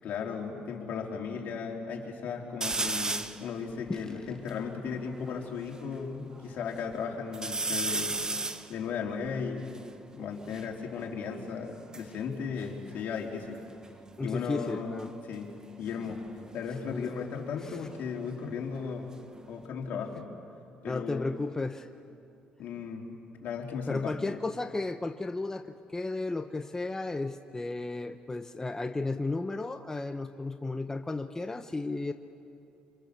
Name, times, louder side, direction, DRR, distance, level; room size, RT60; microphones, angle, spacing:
voice 1, 0.0-8.1 8.7-9.7 10.1-13.6 14.2-15.0 15.3-15.5 15.8-16.2 16.5-19.1 19.5-20.3 20.8-21.3 22.6-23.1 23.4-24.4, left 6 dB, 65° left, 0 dB, 3.9 m, -36 dB
sound 1, 2.6-3.4 4.0-4.1 4.3-5.8 6.3-6.9 7.3-10.7 11.6-13.6 13.8-14.3 15.9-18.5 18.9-19.7, right 3 dB, 25° right, 1.3 m, -36 dB
voice 2, 3.9-4.2 14.2-15.1 16.9-17.1 17.6-17.8 20.8-21.9 23.9-32.1, left 3 dB, 20° left, 8 dB, 1.0 m, -34 dB
26.5 x 26.5 x 7.0 m, 2.7 s
supercardioid pair, 70°, 3 cm